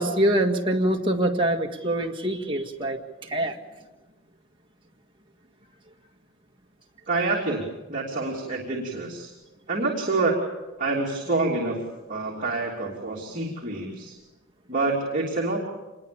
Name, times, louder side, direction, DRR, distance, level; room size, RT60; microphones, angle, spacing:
voice 1, 0.0-3.6, right 1 dB, 25° right, 1 dB, 1.9 m, -24 dB
voice 2, 7.1-7.6 7.9-9.3 9.7-10.4 10.8-11.8 12.1-14.1 14.7-15.6, right 3 dB, 40° right, -2 dB, 3.1 m, -27 dB
26.5 x 21.0 x 7.0 m, 1.1 s
head